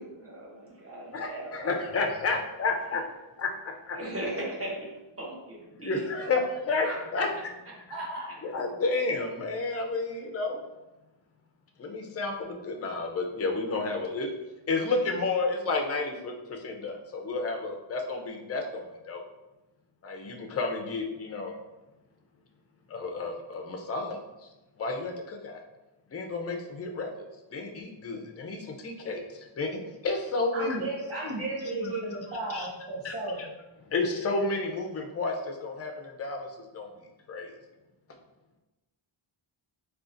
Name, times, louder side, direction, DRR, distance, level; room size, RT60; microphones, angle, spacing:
voice 1, 0.0-1.8 3.9-4.9 5.2-6.0 6.8-6.9, right 1 dB, 30° right, -4 dB, 0.9 m, -37 dB
voice 2, 1.1-3.0 3.4-4.0 5.7-7.5 8.4-10.6 11.8-14.3 14.7-16.3 16.6-19.2 20.0-21.6 22.9-24.2 24.8-25.6 26.1-27.3 27.5-29.7 30.0-30.8 32.5-32.7 33.0-33.1 33.4-33.5 33.9-36.9 37.3-37.5, left 3 dB, 30° left, 2 dB, 0.4 m, -31 dB
voice 3, 7.9-8.2 30.5-33.5, right 2 dB, 75° right, -7 dB, 0.9 m, -34 dB
3.8 x 2.4 x 2.5 m, 1.0 s
wide cardioid pair, 105°, 49 cm